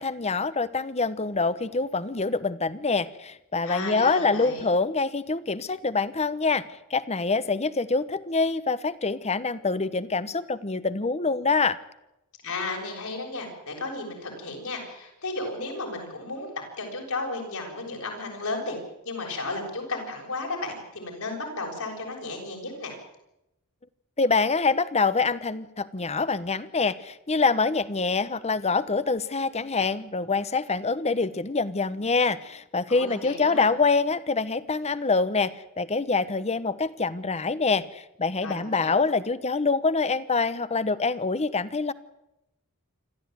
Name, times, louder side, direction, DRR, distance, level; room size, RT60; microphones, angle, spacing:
voice 1, 0.0-6.6 6.9-11.8 24.2-41.9, left 4 dB, 30° left, 15 dB, 1.0 m, -25 dB
voice 2, 3.6-4.6 12.4-18.8 19.0-22.9 32.9-33.7 38.4-39.0, left 2 dB, 75° left, 1 dB, 7.3 m, -34 dB
27.0 x 14.0 x 9.3 m, 0.88 s
head